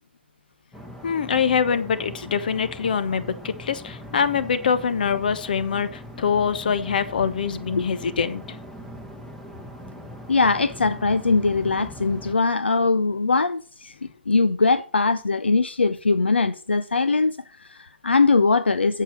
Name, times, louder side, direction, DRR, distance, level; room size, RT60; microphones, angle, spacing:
sound 1, 0.7-12.4, left 1 dB, 5° left, 1.2 m, -40 dB
voice 1, 1.0-8.6, left 6 dB, 50° left, 1.1 m, -24 dB
voice 2, 10.3-13.9 14.3-19.0, left 3 dB, 75° left, 0.5 m, -21 dB
8.6 x 7.7 x 5.2 m
figure-of-eight pair, 130°, 6 cm